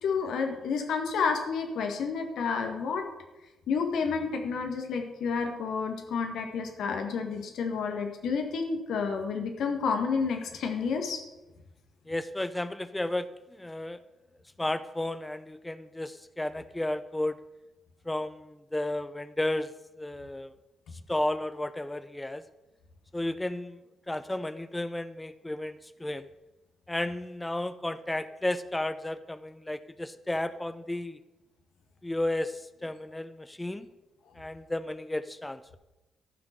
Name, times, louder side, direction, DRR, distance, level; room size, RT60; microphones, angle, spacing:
voice 1, 0.0-3.0 3.7-11.2, left 5 dB, 65° left, 4 dB, 1.7 m, -30 dB
voice 2, 12.1-14.0 14.6-17.4 18.1-19.7 20.0-20.5 21.1-22.4 23.1-23.8 24.1-26.3 26.9-31.2 32.0-33.9 34.3-35.8, left 1 dB, 15° left, 13 dB, 0.7 m, -33 dB
13.5 x 6.0 x 6.6 m, 1.1 s
hypercardioid pair, 40°, 0 cm